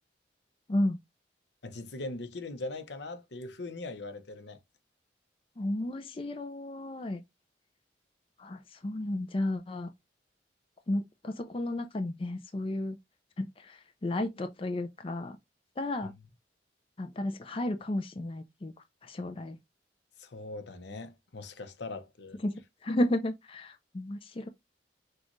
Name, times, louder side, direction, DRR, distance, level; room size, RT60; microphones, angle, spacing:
voice 1, 1.6-4.6 16.0-16.1 20.2-22.4, left 2 dB, 75° left, 0.8 m, -40 dB
voice 2, 5.6-7.2 8.4-9.9 10.9-13.0 13.4-15.4 15.8-16.1 17.0-18.7 19.0-19.6 22.4-24.5, left 1 dB, 30° left, 0.4 m, -33 dB
6.3 x 2.4 x 3.0 m
head